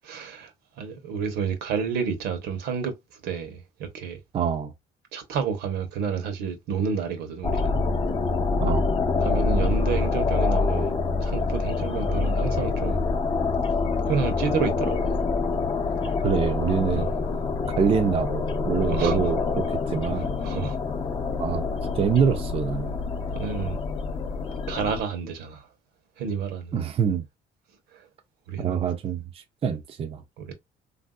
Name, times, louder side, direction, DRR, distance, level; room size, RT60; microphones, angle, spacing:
voice 1, 0.0-4.2 5.1-7.8 9.2-10.9 11.2-13.0 14.0-15.0 16.9-17.1 18.9-19.2 20.4-20.8 23.3-23.8 24.7-25.7 26.2-26.7 27.9-28.1 28.5-28.9 30.4-30.5, right 6 dB, 80° right, 0.9 m, -30 dB
voice 2, 4.3-4.7 8.6-8.9 16.0-17.1 17.8-20.3 21.4-21.7 22.0-23.0 26.7-27.2 28.6-29.2 29.6-30.2, right 7 dB, 35° right, 0.5 m, -25 dB
sound 1, 7.4-25.0, left 4 dB, 30° left, 0.6 m, -26 dB
3.3 x 2.6 x 2.3 m
cardioid pair, 110°, 17 cm